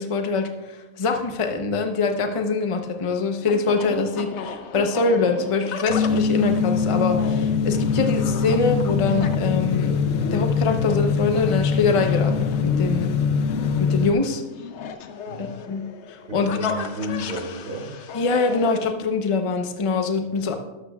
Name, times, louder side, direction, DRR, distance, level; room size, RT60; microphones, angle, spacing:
voice 1, 0.0-9.9 10.3-13.1 13.8-14.4 15.4-15.8 16.1-16.8 18.1-20.6, left 4 dB, 30° left, 5 dB, 0.7 m, -24 dB
sound 1, 2.3-18.9, left 5 dB, 60° left, 0.9 m, -36 dB
sound 2, 5.9-14.1, left 6 dB, 85° left, 1.1 m, -23 dB
voice 2, 16.3-17.9, left 1 dB, 75° right, -2 dB, 3.2 m, -32 dB
12.5 x 12.0 x 2.3 m, 1.0 s
omnidirectional pair, 1.5 m